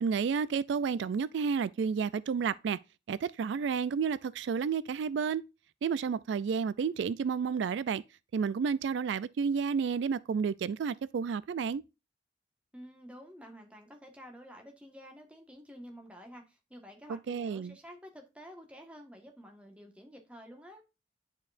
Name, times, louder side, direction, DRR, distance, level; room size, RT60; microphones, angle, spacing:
voice 1, 0.0-2.8 3.1-5.4 5.8-8.0 8.3-11.8 17.1-17.7, right 6 dB, 85° right, 0.3 m, -31 dB
voice 2, 12.7-20.8, equal, 5° right, 1.4 m, -50 dB
10.5 x 4.5 x 2.5 m
head